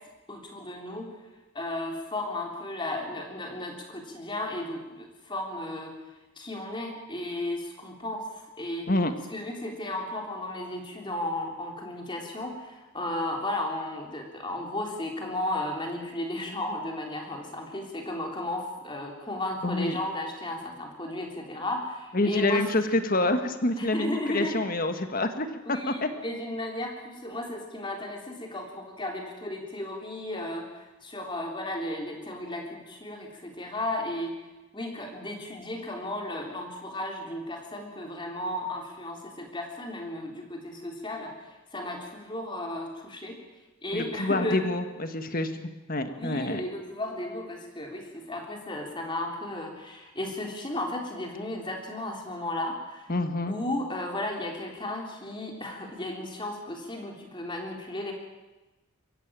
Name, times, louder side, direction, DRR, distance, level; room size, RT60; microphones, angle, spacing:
voice 1, 0.3-1.1 1.6-5.9 6.4-8.3 8.6-8.9 9.3-22.6 23.8-24.6 25.7-34.4 34.7-43.4 43.8-44.6 46.2-53.1 53.5-58.1, left 1 dB, 20° left, 2 dB, 3.5 m, -34 dB
voice 2, 19.6-20.0 22.1-26.1 43.9-46.6 53.1-53.6, left 2 dB, 40° left, 8 dB, 1.5 m, -27 dB
23.0 x 15.0 x 8.9 m, 1.1 s
head